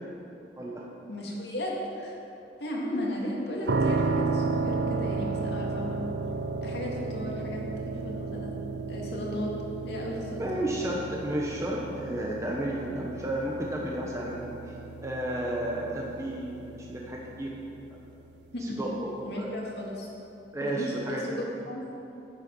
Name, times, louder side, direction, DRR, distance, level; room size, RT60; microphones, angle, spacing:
voice 1, 0.5-0.8 10.4-17.5 18.6-19.5 20.5-21.4, right 1 dB, 15° right, -3 dB, 0.9 m, -32 dB
voice 2, 1.1-2.2 2.6-6.1 6.6-8.5 8.9-9.5 9.8-10.6 18.5-18.9 19.2-20.1 20.6-22.0, left 1 dB, 70° left, -2 dB, 2.0 m, -35 dB
sound 1, 3.7-18.5, right 3 dB, 70° right, 0.5 m, -33 dB
9.9 x 8.9 x 5.3 m, 2.9 s
head